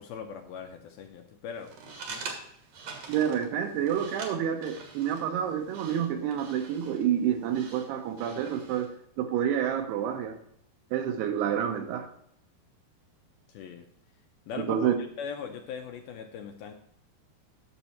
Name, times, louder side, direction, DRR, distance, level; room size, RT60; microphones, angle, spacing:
voice 1, 0.0-2.4 13.5-13.9 14.5-14.9 15.2-16.7, left 6 dB, 80° left, 4 dB, 2.3 m, -40 dB
sound 1, 1.6-8.9, right 4 dB, 60° right, 1.9 m, -45 dB
voice 2, 3.1-8.9 9.2-10.4 10.9-12.1 14.6-15.0, right 9 dB, 80° right, 7 dB, 2.8 m, -28 dB
10.0 x 6.7 x 4.3 m, 0.69 s
omnidirectional pair, 4.9 m